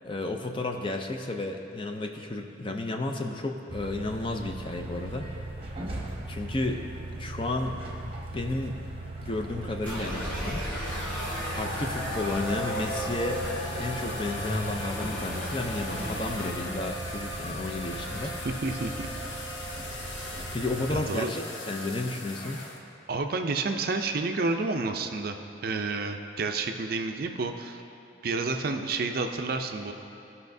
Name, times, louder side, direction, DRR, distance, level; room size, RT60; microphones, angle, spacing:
voice 1, 0.0-5.3 6.3-8.8 9.2-10.6 11.6-13.4 13.8-18.4 20.5-22.6, left 2 dB, 25° left, 3 dB, 0.5 m, -32 dB
sound 1, 3.7-21.0, right 1 dB, 30° right, 0.9 m, -38 dB
sound 2, 9.8-16.5, equal, 10° left, 1.6 m, -35 dB
sound 3, 10.8-22.8, left 2 dB, 70° left, 0.8 m, -40 dB
voice 2, 18.4-19.1 20.9-21.3 23.1-25.4 25.6-27.8 28.2-29.9, right 3 dB, 50° right, 5 dB, 0.4 m, -30 dB
15.5 x 5.6 x 2.7 m, 2.8 s
head